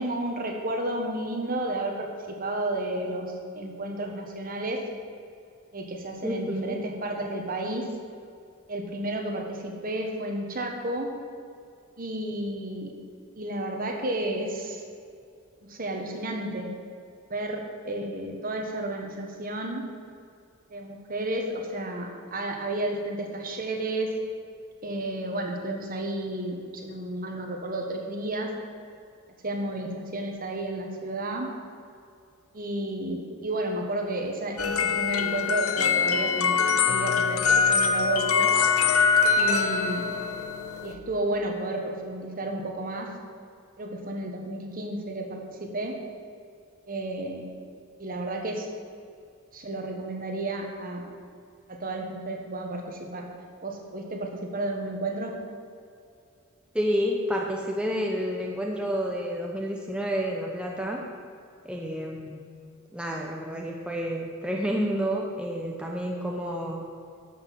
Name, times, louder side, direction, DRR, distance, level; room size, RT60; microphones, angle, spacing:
voice 1, 0.0-4.8 5.7-7.8 8.7-11.1 12.0-12.9 13.4-14.8 15.7-16.7 17.3-19.8 20.7-24.1 24.8-28.5 29.4-31.5 32.5-38.5 39.4-40.1 40.8-43.1 43.8-45.9 46.9-47.4 48.0-48.7 49.5-51.0 51.7-53.2 53.6-55.3, right 1 dB, 40° right, 2 dB, 1.5 m, -32 dB
voice 2, 6.2-6.8 56.7-61.0 61.6-62.4 62.9-66.9, equal, 5° right, -1 dB, 0.8 m, -29 dB
sound 1, 34.6-40.9, left 5 dB, 75° left, 0.8 m, -23 dB
12.5 x 6.1 x 7.5 m, 2.4 s
head